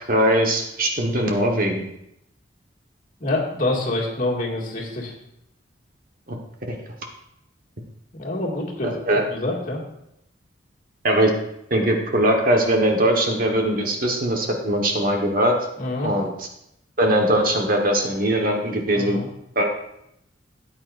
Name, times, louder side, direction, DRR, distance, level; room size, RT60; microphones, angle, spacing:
voice 1, 0.1-1.8 6.3-6.4 6.7-6.8 8.8-9.2 11.0-11.3 11.7-15.6 16.0-16.5 17.0-19.2 19.5-19.7, right 1 dB, 45° right, 2 dB, 1.3 m, -21 dB
voice 2, 3.2-5.1 8.1-9.0 9.3-9.8 15.8-16.1 18.9-19.3, left 2 dB, 45° left, -3 dB, 2.1 m, -26 dB
13.5 x 8.8 x 2.6 m, 0.79 s
head